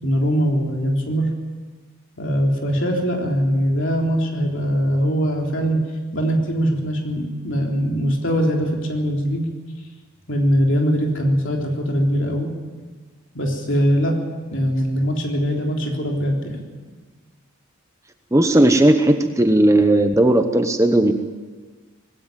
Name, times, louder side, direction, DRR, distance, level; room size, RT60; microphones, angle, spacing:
voice 1, 0.0-1.3 2.2-5.8 6.1-9.4 10.3-12.5 13.3-14.2 14.5-16.6, equal, 55° left, 1 dB, 3.7 m, -21 dB
voice 2, 18.3-21.1, right 1 dB, 15° right, 6 dB, 0.9 m, -16 dB
20.0 x 16.5 x 9.2 m, 1.4 s
head